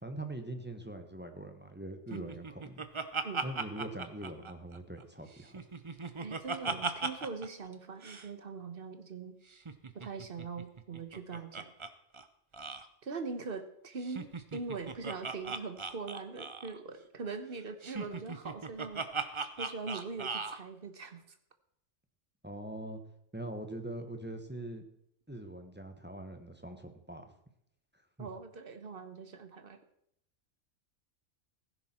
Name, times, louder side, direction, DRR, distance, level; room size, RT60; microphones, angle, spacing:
voice 1, 0.0-2.8 3.4-5.6 22.4-23.0 23.3-24.8 25.3-27.3 28.2-28.3, right 1 dB, 10° right, 5 dB, 1.1 m, -42 dB
Laughter, 2.1-5.0 5.4-7.5 7.7-7.8 8.0-8.3 9.5-11.9 12.1-12.3 12.5-12.9 14.0-16.8 17.8-20.6, right 4 dB, 30° right, 0.6 m, -38 dB
voice 2, 6.2-9.3 9.9-11.7 13.0-19.0 19.6-21.4 28.2-29.8, right 4 dB, 45° right, 8 dB, 1.3 m, -42 dB
15.5 x 10.0 x 4.4 m, 0.73 s
omnidirectional pair, 1.3 m